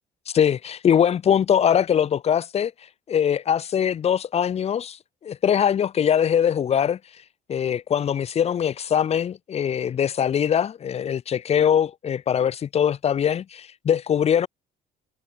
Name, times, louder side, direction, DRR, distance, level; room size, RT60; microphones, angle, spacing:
voice 1, 0.3-2.7 3.1-5.0 5.2-7.0 7.5-14.5, left 8 dB, 40° left, 0.7 m, -22 dB
cardioid pair, 110°, 17 cm